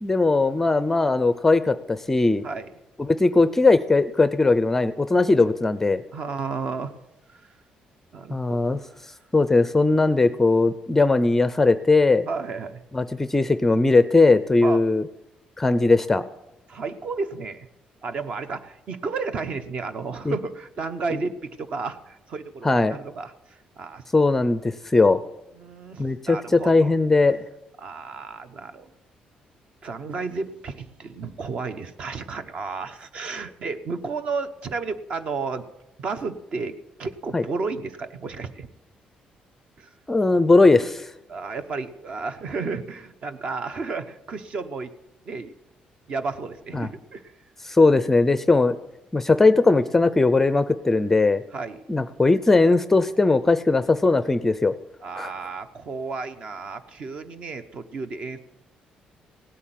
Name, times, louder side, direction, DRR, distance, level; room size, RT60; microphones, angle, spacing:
voice 1, 0.0-2.5 3.0-6.0 8.3-8.8 9.3-12.3 12.9-15.0 15.6-16.3 20.2-20.3 22.6-23.0 24.1-25.2 26.0-27.4 37.3-37.4 40.1-41.1 46.7-46.9 47.6-48.8 49.1-51.4 51.9-54.7 55.2-55.3, left 3 dB, 10° left, 13 dB, 0.5 m, -19 dB
voice 2, 6.1-7.0 7.3-7.4 8.1-8.9 12.3-12.8 14.6-14.8 16.7-17.7 18.0-24.0 25.6-26.9 27.8-28.9 29.8-35.7 36.0-38.7 39.8-39.9 41.3-44.9 45.3-45.5 46.1-47.3 51.5-51.8 55.0-58.4, right 4 dB, 45° right, 10 dB, 1.0 m, -32 dB
17.5 x 8.4 x 9.2 m, 0.89 s
cardioid pair, 165°, 3 cm